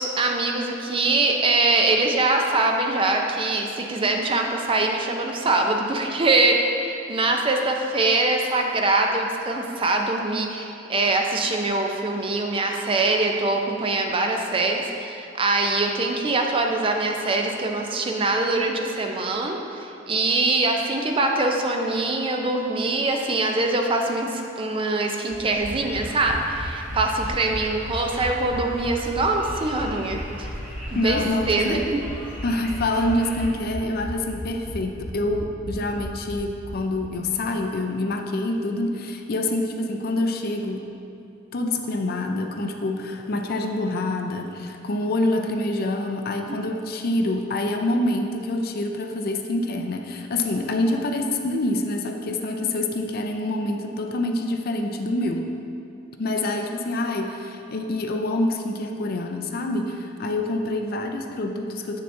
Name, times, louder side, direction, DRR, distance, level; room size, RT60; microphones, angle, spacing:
voice 1, 0.0-30.5 30.9-31.2 31.5-32.0, right 2 dB, 30° right, 2 dB, 0.5 m, -23 dB
sound 1, 25.3-37.0 37.3-37.4 37.6-37.7, equal, 55° right, 1.0 m, -35 dB
Conversation, 25.5-33.5, equal, 5° right, 1.4 m, -42 dB
voice 2, 30.9-31.8 32.4-40.8 41.5-55.5 56.2-62.0, left 1 dB, 50° left, 4 dB, 0.5 m, -26 dB
8.1 x 6.5 x 2.6 m, 2.7 s
head